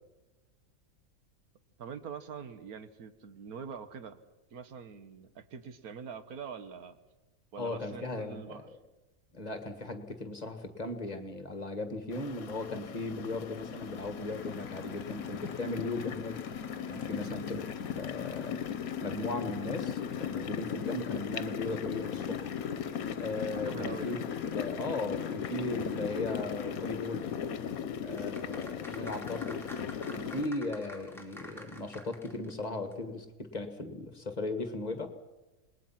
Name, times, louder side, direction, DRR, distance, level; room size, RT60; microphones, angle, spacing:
voice 1, 1.8-4.2 4.5-7.0 7.5-8.7 17.1-17.4 23.5-24.2, right 6 dB, 85° right, 11 dB, 1.7 m, -44 dB
voice 2, 7.6-8.6 9.3-16.4 16.9-17.6 17.9-18.6 19.0-22.5 23.2-24.2 24.5-27.3 28.0-29.6 29.9-35.1, left 2 dB, 30° left, 8 dB, 1.8 m, -37 dB
sound 1, 12.1-30.5, left 8 dB, 75° left, 1.4 m, -37 dB
Applause, 13.2-28.0, left 5 dB, 45° left, 1.4 m, -52 dB
sound 2, 28.1-32.6 32.9-33.0, left 1 dB, ahead, 2.5 m, -48 dB
27.5 x 20.0 x 5.9 m, 1.1 s
omnidirectional pair, 1.5 m